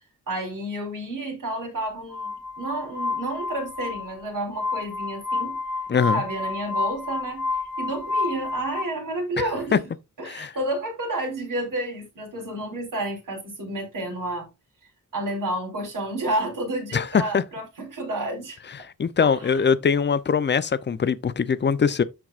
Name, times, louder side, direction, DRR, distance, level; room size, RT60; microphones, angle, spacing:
voice 1, 0.3-5.6 6.0-9.9 10.2-14.5 15.1-18.6 19.2-19.6, right 1 dB, 80° right, 4.3 m, -30 dB
Glass, 2.1-8.8, left 4 dB, 5° right, 1.6 m, -30 dB
voice 2, 5.9-6.2 9.4-9.8 10.2-10.5 16.9-17.4 19.0-22.0, left 6 dB, 35° left, 0.6 m, -22 dB
13.5 x 4.6 x 2.4 m
wide cardioid pair, 140°, 32 cm